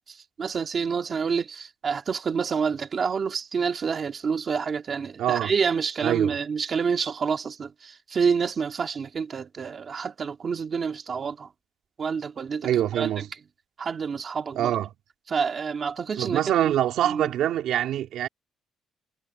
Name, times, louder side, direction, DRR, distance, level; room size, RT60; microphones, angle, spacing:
voice 1, 0.4-11.5 12.0-13.2 13.8-14.7 15.3-16.7 17.0-17.3, right 6 dB, 30° right, 2.2 m, -28 dB
voice 2, 5.2-5.5 6.0-6.4 12.6-13.3 14.5-14.9 16.2-18.3, right 11 dB, 65° right, 2.9 m, -24 dB
cardioid pair, 180°, 0 cm